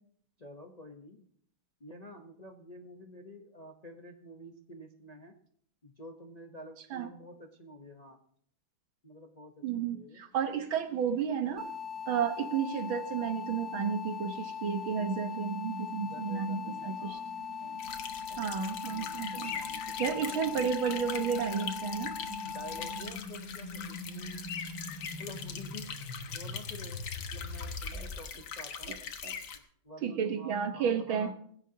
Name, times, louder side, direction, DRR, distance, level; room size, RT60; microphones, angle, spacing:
voice 1, 0.4-1.2 1.8-5.3 5.8-8.2 9.0-10.2 16.0-17.3 17.6-17.8 18.9-20.6 22.4-24.4 25.2-25.9 26.3-29.0 29.8-31.3, left 1 dB, 35° left, 3 dB, 0.6 m, -49 dB
voice 2, 9.6-11.7 12.1-17.2 18.3-19.5 20.0-22.1 27.9-28.1 28.9-29.0 29.2-29.3 30.0-31.3, right 7 dB, 80° right, 7 dB, 2.0 m, -32 dB
sound 1, 10.3-28.2, left 1 dB, 85° left, 3.0 m, -46 dB
sound 2, 11.6-23.0, left 7 dB, ahead, 1.1 m, -40 dB
sound 3, 17.8-29.6, left 7 dB, 70° left, 1.9 m, -42 dB
18.5 x 16.0 x 2.8 m, 0.64 s
omnidirectional pair, 2.2 m